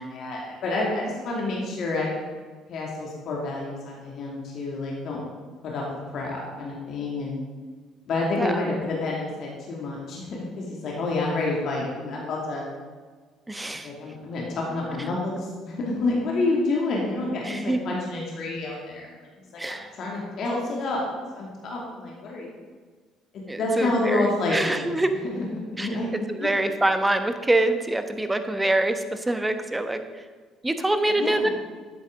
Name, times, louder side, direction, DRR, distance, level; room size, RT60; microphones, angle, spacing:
voice 1, 0.0-2.1 2.7-5.2 5.6-5.8 6.1-7.3 8.1-12.7 13.8-21.0 21.3-22.5 23.3-24.9 25.3-26.1 26.4-26.6 31.1-31.5, left 2 dB, 50° left, -3 dB, 2.4 m, -29 dB
voice 2, 13.5-13.9 17.4-17.8 19.6-19.9 23.5-25.1 25.8-25.9 26.3-30.2 30.6-31.5, right 1 dB, 10° right, 8 dB, 1.1 m, -25 dB
13.0 x 9.5 x 3.8 m, 1.5 s
figure-of-eight pair, 50°, 0 cm